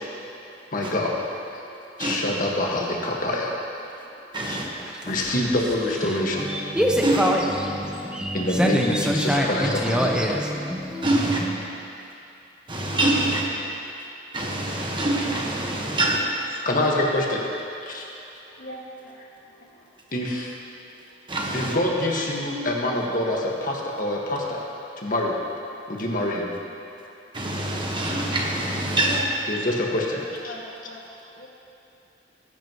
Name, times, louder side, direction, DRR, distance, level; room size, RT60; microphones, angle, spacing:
voice 1, 0.7-1.1 2.0-3.5 4.5-4.6 5.1-6.5 8.3-10.3 16.7-17.4 17.8-18.1 20.1-20.6 21.5-24.6 25.0-25.4 25.9-26.5 29.5-30.5, left 1 dB, 50° left, -2 dB, 1.7 m, -25 dB
voice 2, 4.3-4.7 7.0-7.3 11.0-11.4 12.7-13.4 14.3-16.2 21.3-21.7 27.3-29.2, right 2 dB, 25° right, -2 dB, 1.4 m, -24 dB
sound 1, 4.8-11.6, equal, 5° right, 0.8 m, -25 dB
voice 3, 7.1-8.3 11.2-11.9 13.5-13.8 18.5-19.2 19.8-19.9 29.0-29.3 30.2-31.0 31.4-31.5, left 1 dB, 70° left, -3 dB, 2.1 m, -42 dB
20.0 x 11.0 x 3.1 m, 2.8 s
head